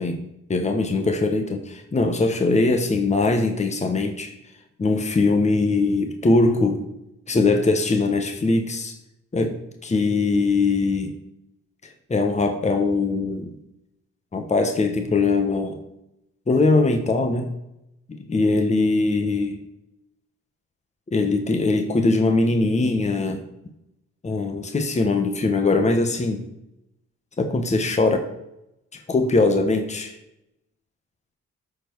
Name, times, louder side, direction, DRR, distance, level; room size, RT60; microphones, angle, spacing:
voice 1, 0.0-4.3 4.8-6.9 7.3-9.0 9.3-11.2 12.1-13.5 14.3-15.8 16.5-17.5 18.1-19.6 21.1-23.4 24.2-26.4 27.4-28.3 29.1-30.2, left 3 dB, 25° left, 5 dB, 1.3 m, -21 dB
12.5 x 4.6 x 4.7 m, 0.85 s
cardioid pair, 90°, 30 cm